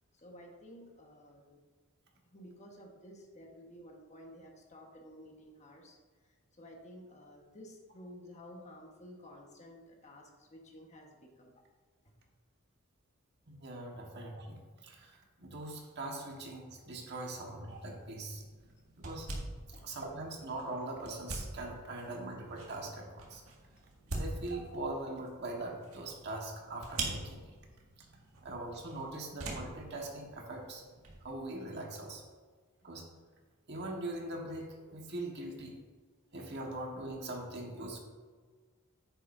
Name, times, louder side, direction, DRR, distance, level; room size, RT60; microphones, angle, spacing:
voice 1, 0.1-1.6 2.3-6.0 6.3-11.5 12.0-12.1 19.7-19.9, equal, 35° left, 0 dB, 1.4 m, -53 dB
voice 2, 13.5-18.4 19.0-19.3 19.8-23.4 24.1-27.6 28.4-30.8 31.2-32.2 32.8-33.1 33.7-35.7 36.3-38.0, right 2 dB, 50° right, 0 dB, 1.6 m, -41 dB
card placed on table, 17.7-31.3, right 2 dB, 75° right, 2.0 m, -45 dB
9.9 x 9.7 x 2.7 m, 1.5 s
head